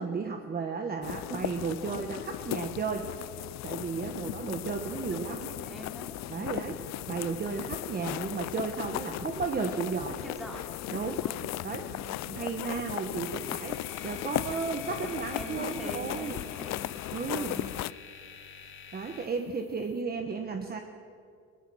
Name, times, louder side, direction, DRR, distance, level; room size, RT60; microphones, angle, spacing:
voice 1, 0.0-3.1 3.6-5.4 6.3-6.8 7.1-10.2 10.9-11.2 11.6-11.9 12.3-16.4 17.1-17.6 18.9-20.8, right 5 dB, 30° right, 4 dB, 1.3 m, -34 dB
sound 1, 1.0-17.9, left 17 dB, 65° left, 0.4 m, -37 dB
voice 2, 4.1-4.6 5.0-6.2 6.5-6.8 10.1-10.6 11.1-12.4 14.3-16.9 17.3-17.8, right 1 dB, ahead, 0 dB, 3.8 m, -44 dB
sound 2, 13.2-20.0, left 6 dB, 40° left, 2.8 m, -48 dB
23.0 x 21.0 x 6.4 m, 2.3 s
cardioid pair, 150°, 30 cm